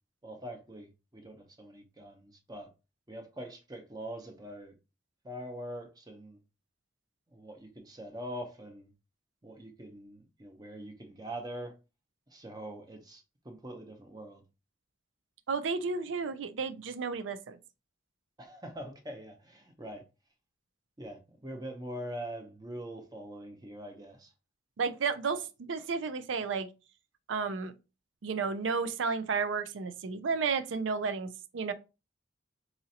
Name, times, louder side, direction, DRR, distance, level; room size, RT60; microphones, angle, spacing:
voice 1, 0.2-2.7 3.1-4.7 5.2-6.4 7.3-8.9 9.4-11.7 12.3-14.4 18.4-20.0 21.0-24.3, right 1 dB, 20° right, 0.6 m, -43 dB
voice 2, 15.5-17.6 24.8-26.7 27.3-27.7 28.2-31.7, right 5 dB, 90° right, 0.4 m, -32 dB
4.1 x 2.5 x 2.7 m
head